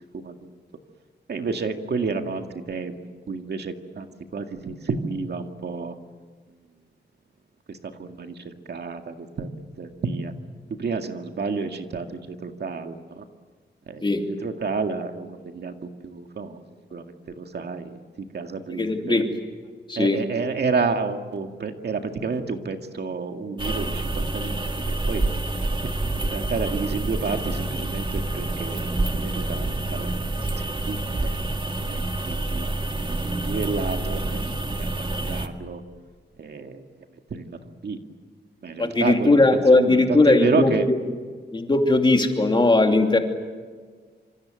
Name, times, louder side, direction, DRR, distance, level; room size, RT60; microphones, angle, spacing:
voice 1, 0.1-0.5 1.3-3.0 3.3-4.1 4.3-5.9 7.7-9.5 9.8-10.3 10.8-13.2 13.9-14.1 14.4-16.6 16.9-19.2 20.0-25.2 26.2-28.9 29.2-30.1 30.9-31.4 31.9-32.0 32.3-32.7 33.4-34.4 34.8-35.8 36.4-36.8 37.3-38.0 38.6-40.9, right 4 dB, 65° right, 5 dB, 2.1 m, -30 dB
voice 2, 18.7-19.3 19.9-20.2 38.8-41.0 41.5-43.2, left 2 dB, 25° left, 4 dB, 2.8 m, -19 dB
sound 1, 23.6-35.5, right 2 dB, 25° right, 1.9 m, -27 dB
27.0 x 26.5 x 7.7 m, 1.5 s
wide cardioid pair, 165°, 18 cm